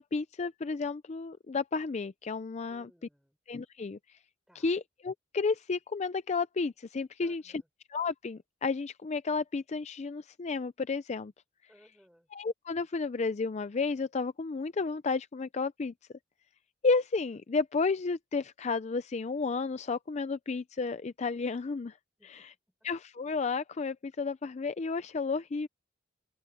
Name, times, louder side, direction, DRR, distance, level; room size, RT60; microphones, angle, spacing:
voice 1, 0.0-2.9 3.5-4.0 4.5-7.6 7.9-11.3 12.3-15.9 16.8-21.9 22.2-22.5 22.8-25.7, left 4 dB, 35° left, 0.4 m, -32 dB
voice 2, 2.7-3.4 4.5-4.7 7.2-7.7 11.7-12.3 22.2-22.5, equal, 5° right, 4.3 m, -62 dB
open air
head